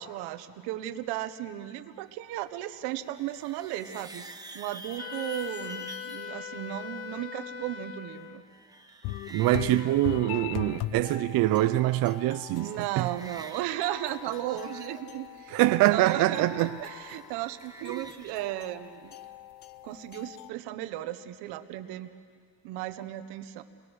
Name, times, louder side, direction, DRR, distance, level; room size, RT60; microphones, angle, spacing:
voice 1, 0.0-4.2 4.5-8.4 12.5-19.2 19.8-22.1 22.6-23.6, right 14 dB, 85° right, 1.3 m, -35 dB
sound 1, 2.9-6.3 7.7-11.1 11.3-12.1 12.4-13.8 14.0-18.4, right 2 dB, 10° right, 1.2 m, -48 dB
Wind instrument woodwind instrument, 5.0-8.4, left 8 dB, 35° left, 0.9 m, -40 dB
sound 2, 9.0-20.5, left 15 dB, 75° left, 0.8 m, -41 dB
voice 2, 9.3-12.7 13.0-13.1 15.5-16.7 18.0-18.1, right 16 dB, 60° right, 0.6 m, -24 dB
30.0 x 20.5 x 6.3 m
cardioid pair, 125°, 38 cm